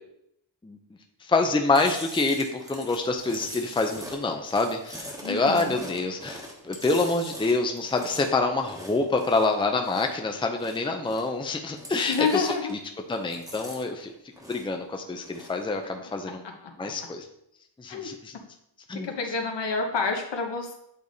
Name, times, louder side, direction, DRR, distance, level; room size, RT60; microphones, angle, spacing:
voice 1, 1.2-12.8 13.1-14.1 14.5-16.4 16.8-17.3 17.8-18.4 18.9-19.1, left 3 dB, 10° left, 4 dB, 0.6 m, -26 dB
Chewing mastication, 1.8-10.2 10.5-11.4 11.7-12.9 13.1-14.8 15.1-15.6, equal, 10° right, 1.3 m, -42 dB
voice 2, 5.2-5.7 12.1-12.7 17.9-18.1 18.9-20.7, left 4 dB, 65° left, 2 dB, 1.2 m, -28 dB
8.8 x 3.4 x 4.0 m, 0.76 s
wide cardioid pair, 100°, 45 cm